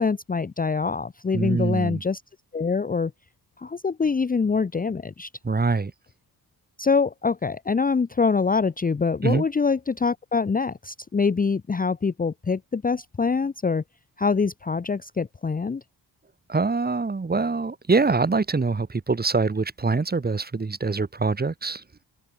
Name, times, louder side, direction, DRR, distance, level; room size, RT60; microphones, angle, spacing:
voice 1, 0.0-2.2 2.5-3.1 3.6-5.3 6.8-13.8 14.2-15.8, left 5 dB, 20° left, 0.7 m, -24 dB
voice 2, 1.3-2.0 5.4-5.9 9.2-9.4 16.5-21.8, right 4 dB, 25° right, 2.3 m, -24 dB
wide cardioid pair, 135°, 41 cm